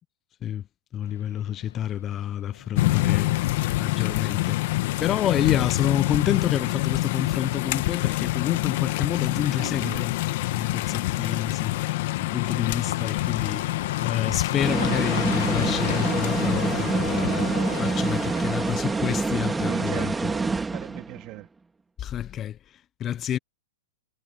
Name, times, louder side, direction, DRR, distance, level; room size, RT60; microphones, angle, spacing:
voice 1, 0.9-3.3 3.8-4.7 5.0-10.1 10.5-11.8 12.2-13.7 14.0-20.1 22.0-23.4, left 10 dB, 25° left, 0.5 m, -29 dB
truck pickup pass slow gravel crunchy snow, 1.0-20.3, left 9 dB, 80° left, 1.4 m, -39 dB
sound 1, 2.8-18.3, left 19 dB, 55° left, 1.1 m, -27 dB
voice 2, 9.5-10.1 19.7-21.5, right 19 dB, 40° right, 2.9 m, -38 dB
sound 2, 14.6-21.2, right 3 dB, 10° right, 1.8 m, -26 dB
hypercardioid pair, 135°, 0 cm